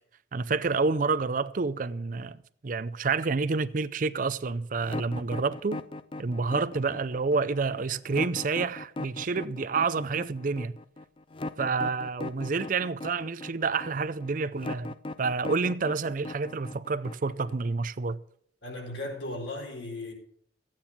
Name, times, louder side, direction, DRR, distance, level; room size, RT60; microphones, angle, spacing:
voice 1, 0.3-5.8 6.2-10.8 11.6-18.2, right 4 dB, 45° right, 0.5 m, -29 dB
sound 1, 4.8-17.7, left 2 dB, 30° left, 0.4 m, -38 dB
voice 2, 18.6-20.1, left 2 dB, 85° left, 4.3 m, -36 dB
14.5 x 9.0 x 5.9 m
head